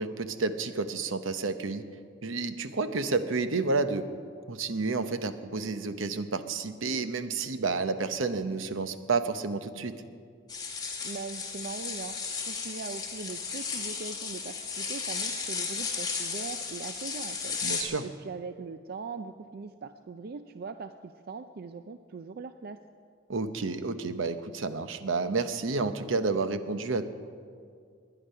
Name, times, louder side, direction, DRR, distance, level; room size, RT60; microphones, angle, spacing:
voice 1, 0.0-1.8 2.2-4.1 4.5-10.0 17.6-18.0 23.3-27.0, right 4 dB, 70° right, 10 dB, 0.8 m, -30 dB
sound 1, 10.5-17.8, left 5 dB, 20° left, 2.2 m, -34 dB
voice 2, 11.0-22.8, right 4 dB, 50° right, 9 dB, 0.4 m, -41 dB
20.5 x 10.0 x 5.6 m, 2.2 s
head